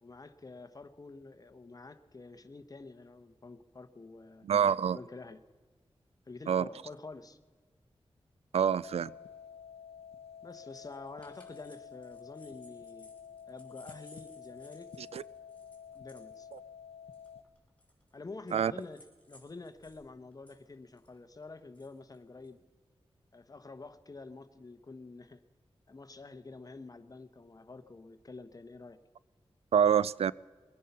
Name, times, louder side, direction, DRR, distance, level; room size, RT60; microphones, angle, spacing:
voice 1, 0.0-4.5 4.9-5.4 6.3-7.4 10.4-13.1 13.5-14.9 15.9-16.5 18.1-19.0 19.3-22.6 23.3-25.4 25.9-29.0, left 3 dB, 35° left, 10 dB, 1.0 m, -48 dB
voice 2, 4.4-5.0 6.5-6.7 8.5-9.1 15.1-15.2 18.5-18.7 29.7-30.3, right 8 dB, 85° right, 21 dB, 0.4 m, -26 dB
sound 1, 8.8-17.4, left 7 dB, 75° left, 0.8 m, -50 dB
sound 2, 10.5-20.0 20.3-22.5, left 1 dB, 15° left, 3.8 m, -61 dB
22.0 x 10.0 x 5.5 m, 1.4 s
wide cardioid pair, 85°, 10 cm